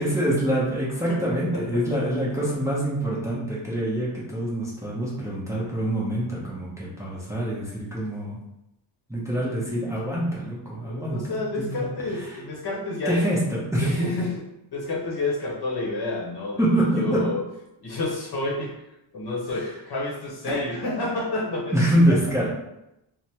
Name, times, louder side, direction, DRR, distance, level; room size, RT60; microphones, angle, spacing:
voice 1, 0.0-8.4 9.1-12.4 13.0-14.0 16.6-17.3 19.5-19.7 21.7-22.5, right 1 dB, 5° right, -6 dB, 0.6 m, -25 dB
voice 2, 1.5-2.0 10.8-13.2 13.8-17.4 17.8-18.8 19.1-21.8 22.1-22.2, left 2 dB, 55° left, -3 dB, 0.8 m, -29 dB
3.3 x 2.0 x 2.8 m, 0.88 s
wide cardioid pair, 115°, 48 cm